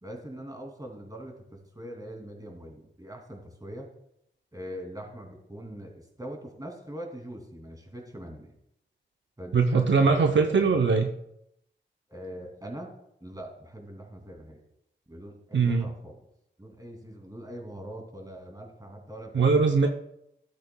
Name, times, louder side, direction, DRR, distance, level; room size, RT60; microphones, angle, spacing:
voice 1, 0.0-3.9 4.5-8.6 9.4-10.8 12.1-12.9 13.2-14.6 15.1-16.2 16.6-19.5, equal, 20° right, 2 dB, 2.6 m, -42 dB
voice 2, 9.5-11.1 15.5-15.9 19.3-19.9, right 4 dB, 75° right, 4 dB, 0.7 m, -21 dB
13.0 x 8.2 x 2.2 m, 0.78 s
cardioid pair, 45°, 19 cm